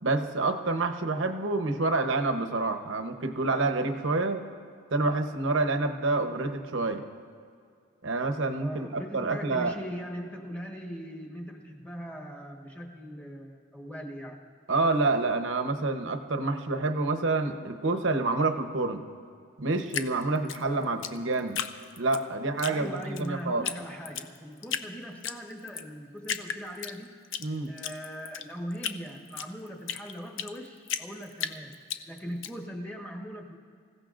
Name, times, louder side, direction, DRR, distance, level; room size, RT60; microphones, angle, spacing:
voice 1, 0.0-4.4 4.9-7.0 8.0-9.7 14.7-19.0 19.6-21.6 22.0-23.7 27.4-27.7, right 3 dB, 60° right, 7 dB, 0.9 m, -28 dB
voice 2, 8.6-14.4 20.6-21.0 22.6-27.2 27.7-31.8 32.1-33.6, equal, 5° left, 0 dB, 1.3 m, -40 dB
Drip, 19.9-22.2 22.6-23.3 23.6-23.8 24.0-24.9 25.2-25.9 26.2-27.4 27.8-30.6 30.9-32.5, left 8 dB, 60° left, 0.6 m, -34 dB
26.5 x 16.0 x 2.5 m, 2.3 s
head